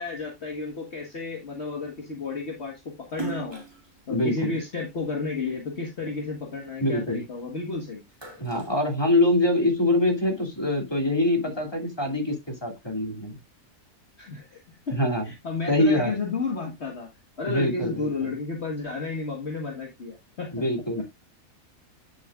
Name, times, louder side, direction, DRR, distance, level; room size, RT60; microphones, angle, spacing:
voice 1, 0.0-3.6 4.1-8.0 14.2-15.0 15.2-17.1 17.4-20.5 21.0-21.1, left 4 dB, 50° left, 1.8 m, -32 dB
Splash splatter, 3.1-5.6 6.1-7.6 7.9-9.6, right 4 dB, 15° right, 2.2 m, -40 dB
voice 2, 4.1-4.6 6.8-7.2 8.4-13.4 14.9-15.2 15.7-16.1 17.4-18.1 20.5-21.0, left 1 dB, 15° left, 2.7 m, -24 dB
10.5 x 6.7 x 2.5 m
omnidirectional pair, 1.5 m